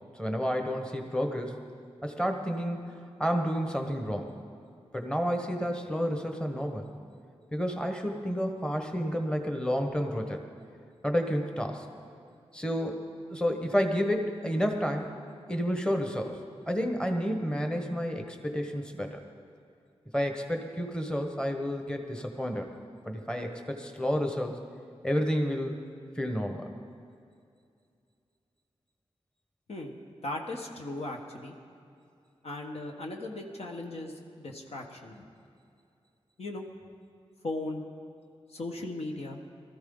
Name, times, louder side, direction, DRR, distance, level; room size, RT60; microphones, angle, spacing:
voice 1, 0.1-1.6 2.0-4.3 4.9-6.9 7.5-10.4 11.0-11.9 12.5-13.0 13.3-15.1 15.5-16.4 16.7-19.2 20.1-22.7 23.0-24.6 25.0-25.8 26.2-26.7, equal, 10° left, 4 dB, 1.3 m, -30 dB
voice 2, 30.2-31.5 32.4-35.2 36.4-36.6 37.4-37.8 38.5-39.4, left 2 dB, 65° left, 1 dB, 1.5 m, -37 dB
19.0 x 13.5 x 3.9 m, 2.4 s
cardioid pair, 60°, 11 cm